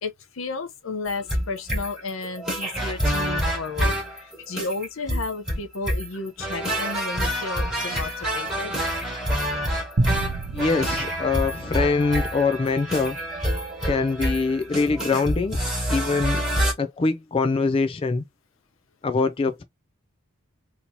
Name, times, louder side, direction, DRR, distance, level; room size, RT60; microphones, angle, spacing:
voice 1, 0.0-8.7, left 3 dB, 75° left, 0.8 m, -33 dB
sound 1, 1.1-16.7, equal, 5° right, 1.4 m, -27 dB
sound 2, 10.0-12.5, right 2 dB, 55° right, 0.7 m, -29 dB
voice 2, 10.5-13.2 13.8-15.6 15.9-16.4 16.8-18.2 19.0-19.6, left 4 dB, 25° left, 0.3 m, -23 dB
3.0 x 2.8 x 3.8 m
head